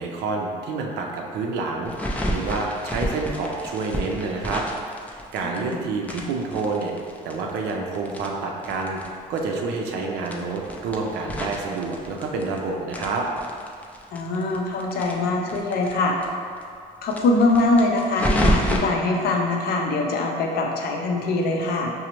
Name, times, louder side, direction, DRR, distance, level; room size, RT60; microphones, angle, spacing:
voice 1, 0.0-4.6 5.1-6.9 7.2-9.0 9.3-13.2, right 3 dB, 85° right, 0 dB, 0.5 m, -28 dB
sound 1, 1.8-5.7 6.0-9.1 9.4-9.5 9.7-9.8 10.2-12.6 12.9-15.9 16.2-16.3 16.6-16.7 17.1-18.8, equal, 10° left, 0.3 m, -28 dB
voice 2, 5.4-5.9 14.1-16.1 17.0-21.9, left 2 dB, 65° left, 1 dB, 0.5 m, -23 dB
4.9 x 2.1 x 2.9 m, 2.3 s
cardioid pair, 110°, 17 cm